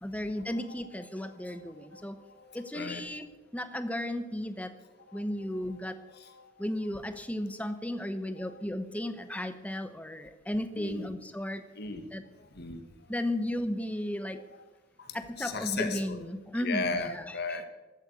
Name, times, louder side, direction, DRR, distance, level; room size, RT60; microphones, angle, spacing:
voice 1, 0.0-2.2 2.5-3.3 3.5-4.7 5.1-6.1 6.6-11.6 12.1-12.2 13.1-14.4 15.1-17.6, left 1 dB, 5° left, 10 dB, 0.9 m, -34 dB
voice 2, 1.3-3.0 5.1-5.2 6.1-6.5 8.4-8.5 10.7-11.1 11.8-12.0 12.5-12.8 15.0-16.2 16.6-17.7, left 4 dB, 55° left, 8 dB, 1.6 m, -37 dB
14.5 x 8.9 x 8.3 m, 1.2 s
head